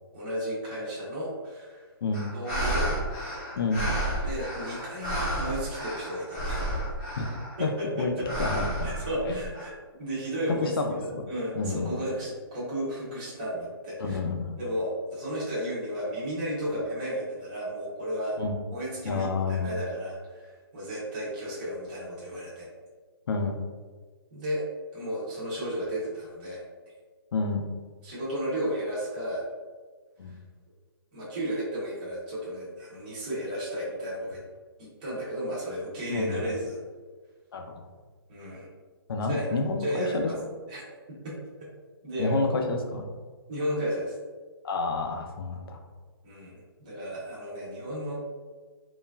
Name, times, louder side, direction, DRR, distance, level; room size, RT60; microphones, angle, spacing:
voice 1, 0.1-1.9 2.3-2.9 4.2-6.9 7.6-8.3 8.8-9.7 10.0-10.7 11.0-14.2 14.6-18.4 18.7-22.7 24.3-24.6 24.9-26.6 28.0-29.4 31.1-34.4 34.8-36.8 38.3-38.7 39.2-39.5 39.8-40.2 40.7-41.7 42.0-42.4 43.5-44.1 46.2-48.2, equal, 20° right, -10 dB, 0.5 m, -33 dB
sound 1, 2.1-7.7 8.2-9.6, right 1 dB, 20° left, 0.6 m, -31 dB
voice 2, 7.2-7.7 8.0-8.9 9.2-9.4 10.6-11.3 11.6-12.0 14.0-14.6 18.4-18.6 19.0-19.8 23.3-23.6 27.3-27.6 30.2-30.3 36.1-36.6 37.5-37.8 39.1-40.3 42.2-43.1 44.6-45.8, left 3 dB, 65° left, 4 dB, 0.4 m, -29 dB
3.0 x 2.3 x 2.2 m, 1.5 s
hypercardioid pair, 175°, 13 cm